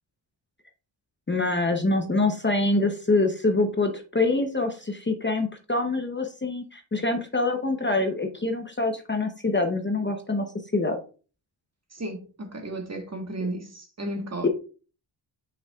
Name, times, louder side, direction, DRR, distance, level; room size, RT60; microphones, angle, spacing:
voice 1, 1.3-10.5 10.7-11.0 14.4-14.5, left 2 dB, 25° left, 0.8 m, -25 dB
voice 2, 11.9-14.5, right 1 dB, 30° right, 1.5 m, -34 dB
7.2 x 5.9 x 2.4 m
wide cardioid pair, 110°, 49 cm